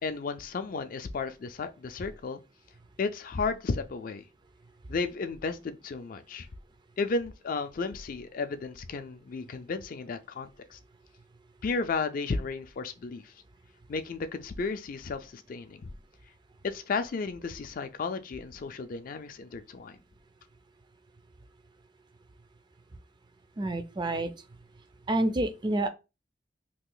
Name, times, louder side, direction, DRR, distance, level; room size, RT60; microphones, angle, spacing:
voice 1, 0.0-2.4 3.0-4.2 4.9-6.5 7.0-10.8 11.6-13.3 13.9-15.9 16.6-20.0, left 4 dB, 50° left, 0.4 m, -33 dB
voice 2, 23.6-24.3 25.1-25.9, right 2 dB, 25° right, 0.4 m, -28 dB
2.9 x 2.4 x 3.8 m
head